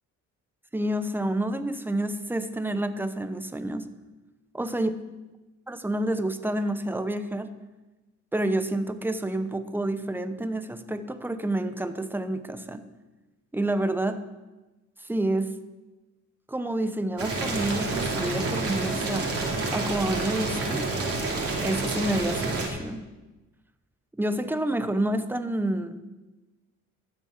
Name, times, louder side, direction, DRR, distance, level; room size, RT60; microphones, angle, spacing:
voice 1, 0.7-3.9 4.5-4.9 5.7-7.5 8.3-12.8 13.5-14.2 15.1-15.6 16.5-19.3 19.7-20.9 21.6-23.0 24.2-26.0, right 1 dB, 5° right, 9 dB, 0.9 m, -28 dB
Boiling, 17.2-22.7, right 3 dB, 50° right, 2.9 m, -28 dB
13.0 x 7.1 x 5.7 m, 1.1 s
cardioid pair, 90°, 30 cm